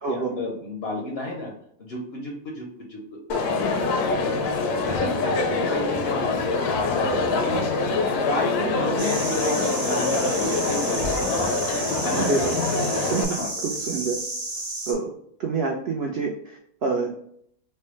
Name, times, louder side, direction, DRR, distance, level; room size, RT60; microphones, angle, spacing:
voice 1, 0.1-1.5 1.8-3.0 3.3-4.4 4.9-7.7 8.1-11.5 11.9-12.3 13.3-14.0, left 2 dB, 60° left, -1 dB, 0.6 m, -32 dB
Crowd, 3.3-13.2, left 3 dB, 80° left, 1.1 m, -25 dB
sound 1, 9.0-14.9, right 2 dB, 55° right, 1.5 m, -32 dB
voice 2, 12.2-12.5 12.9-14.2 14.9-15.1 15.4-17.2, right 4 dB, 75° right, 1 dB, 0.5 m, -27 dB
4.4 x 2.1 x 3.0 m, 0.67 s
omnidirectional pair, 1.6 m